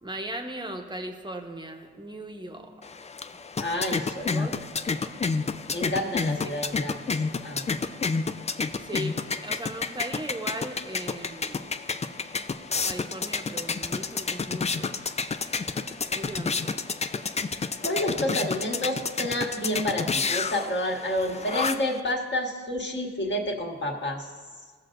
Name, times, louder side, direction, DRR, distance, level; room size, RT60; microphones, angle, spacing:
voice 1, 0.0-2.9 4.3-4.5 6.4-6.5 8.7-11.7 12.8-14.9 16.1-16.8, right 1 dB, 15° right, 5 dB, 1.0 m, -38 dB
sound 1, 2.8-22.0, left 4 dB, 25° left, 0.4 m, -30 dB
voice 2, 3.6-4.6 4.9-5.0 5.7-7.1 7.4-7.7 17.8-24.3, left 1 dB, 40° left, 0 dB, 1.7 m, -29 dB
16.0 x 6.4 x 2.6 m, 1.5 s
supercardioid pair, 55°, 29 cm